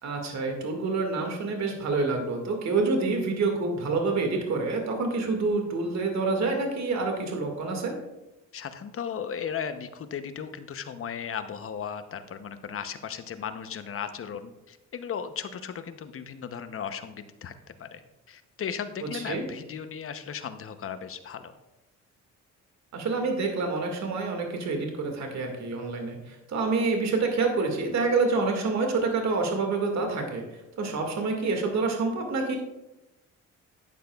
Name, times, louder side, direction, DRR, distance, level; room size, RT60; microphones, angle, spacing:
voice 1, 0.0-7.9 19.0-19.5 22.9-30.4 30.8-32.6, right 3 dB, 65° right, 3 dB, 2.1 m, -27 dB
voice 2, 8.5-17.5 17.8-18.0 18.3-21.5, left 7 dB, 45° left, 10 dB, 0.8 m, -36 dB
12.0 x 8.7 x 2.4 m, 0.97 s
cardioid pair, 90°, 30 cm